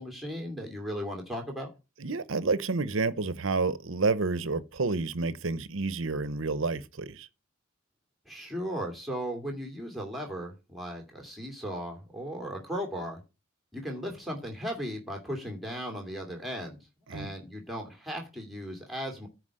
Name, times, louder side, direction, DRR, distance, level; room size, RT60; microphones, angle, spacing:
voice 1, 0.0-1.7 8.3-13.2 13.7-16.8 17.1-19.3, equal, ahead, 2.6 m, -36 dB
voice 2, 2.0-7.3 17.1-17.3, right 3 dB, 70° right, 0.8 m, -29 dB
10.0 x 4.9 x 7.7 m
head